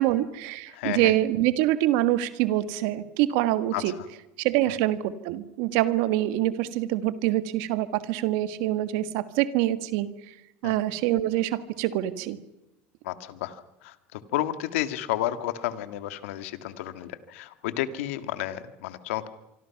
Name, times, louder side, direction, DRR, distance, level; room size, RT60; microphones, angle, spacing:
voice 1, 0.0-3.9 4.4-10.3 10.6-12.4, right 14 dB, 70° right, 12 dB, 1.6 m, -25 dB
voice 2, 0.7-1.1 3.7-3.8 4.7-4.8 10.6-10.8 13.0-19.3, left 13 dB, 85° left, 11 dB, 1.8 m, -31 dB
25.5 x 25.0 x 5.9 m, 0.92 s
supercardioid pair, 120°, 7 cm